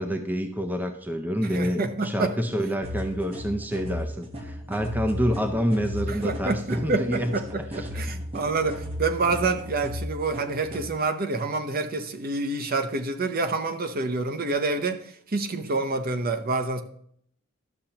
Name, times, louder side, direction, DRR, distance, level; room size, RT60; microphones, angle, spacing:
voice 1, 0.0-7.3 7.7-8.0, equal, 10° right, 0.5 m, -28 dB
voice 2, 1.4-2.3 6.1-16.8, right 3 dB, 45° right, 0.7 m, -27 dB
sound 1, 2.8-10.9, left 1 dB, 30° right, 1.1 m, -35 dB
12.0 x 6.7 x 2.9 m
head